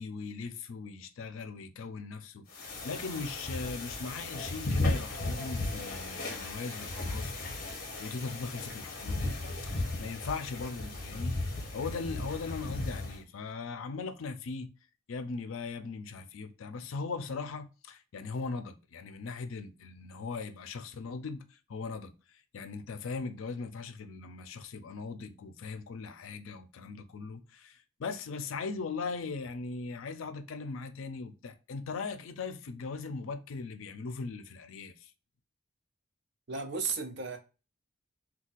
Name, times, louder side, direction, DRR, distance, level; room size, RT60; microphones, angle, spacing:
voice 1, 0.0-11.4 11.7-14.7 15.1-35.1, left 4 dB, 75° left, 0.4 m, -39 dB
sound 1, 2.5-13.2, left 2 dB, 45° left, 0.7 m, -35 dB
voice 2, 36.5-37.4, right 4 dB, 55° right, 0.6 m, -34 dB
2.5 x 2.2 x 3.9 m
head